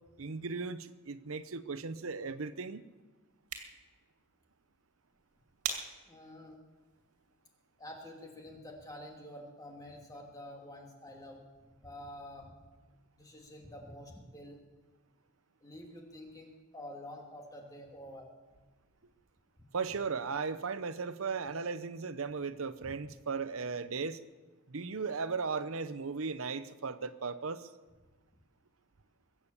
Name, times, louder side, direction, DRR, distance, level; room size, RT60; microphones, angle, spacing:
voice 1, 0.2-2.9 19.7-24.2 24.7-27.7, right 4 dB, 65° right, 0.7 m, -36 dB
sound 1, 3.3-8.3, right 6 dB, 85° right, 2.3 m, -45 dB
voice 2, 6.1-6.6 7.8-11.5 11.8-12.5 13.1-14.6 15.6-18.3 22.8-22.9, left 1 dB, 15° left, 2.4 m, -48 dB
23.0 x 8.3 x 7.1 m
head